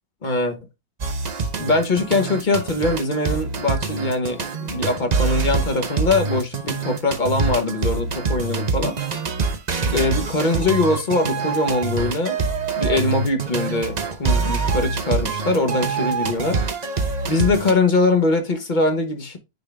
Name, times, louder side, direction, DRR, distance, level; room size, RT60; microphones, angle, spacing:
voice 1, 0.2-0.6 1.6-9.0 9.9-12.4 12.8-16.6 17.3-19.4, left 2 dB, 35° left, 1.2 m, -22 dB
sound 1, 1.0-17.7, right 4 dB, 35° right, 0.7 m, -25 dB
9.2 x 3.7 x 3.4 m
omnidirectional pair, 1.6 m